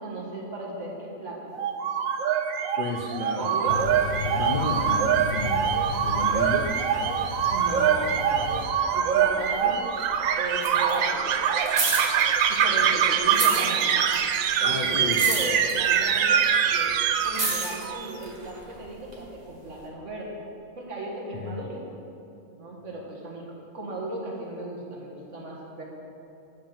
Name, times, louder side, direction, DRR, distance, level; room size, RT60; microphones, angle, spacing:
voice 1, 0.0-1.7 3.4-3.9 7.5-9.7 10.4-11.3 11.7-11.9 12.5-14.0 14.6-16.9 17.2-20.4 20.8-21.8 22.5-23.5 23.7-25.8, right 2 dB, 55° right, -3 dB, 1.9 m, -36 dB
sound 1, 1.5-18.1, right 8 dB, 70° right, 0.9 m, -24 dB
voice 2, 2.8-3.5 4.3-6.7 14.6-15.2 21.3-21.6, left 3 dB, 50° left, -1 dB, 0.6 m, -32 dB
sound 2, 3.7-8.7, left 4 dB, 80° left, 1.3 m, -34 dB
sound 3, 9.1-10.1 10.4-12.9 13.2-19.2 19.8-19.9, right 3 dB, 30° right, 1.1 m, -31 dB
8.8 x 5.4 x 7.2 m, 2.8 s
omnidirectional pair, 1.5 m